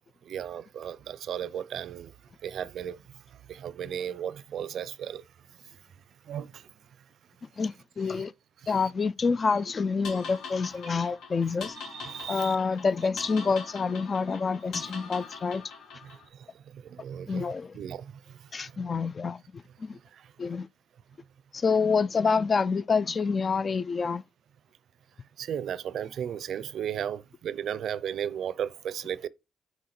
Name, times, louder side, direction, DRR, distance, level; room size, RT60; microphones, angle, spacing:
voice 1, 0.3-2.1 2.4-3.0 3.5-5.2 6.3-6.6 8.1-8.2 8.6-8.8 11.9-12.6 16.7-17.5 17.7-18.0 25.4-29.3, right 9 dB, 65° right, 0.5 m, -35 dB
voice 2, 7.6-8.3 8.7-11.8 12.3-15.6 17.3-17.8 18.5-20.0 20.4-20.7 21.5-24.2, left 5 dB, 35° left, 0.4 m, -27 dB
sound 1, 10.0-16.3, left 5 dB, 80° left, 2.6 m, -43 dB
6.5 x 4.7 x 4.3 m
cardioid pair, 90°, 0 cm